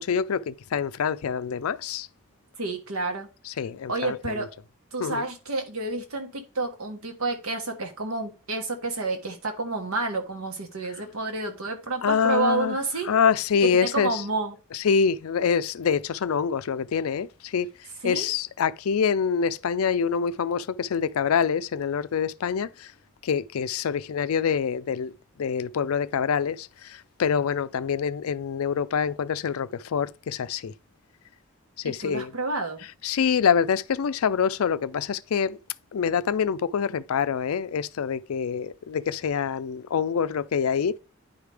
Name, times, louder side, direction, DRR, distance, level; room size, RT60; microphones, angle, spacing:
voice 1, 0.0-2.1 3.4-4.5 5.0-5.3 12.0-14.2 14.7-17.7 18.0-22.9 23.2-25.1 25.4-30.7 31.8-32.3 32.8-35.6 35.9-41.0, left 6 dB, 70° left, 0.4 m, -26 dB
voice 2, 2.6-3.3 3.9-4.5 4.9-13.1 13.6-14.6 18.0-18.3 31.8-32.9, right 3 dB, 75° right, 1.4 m, -29 dB
9.9 x 4.9 x 3.4 m
head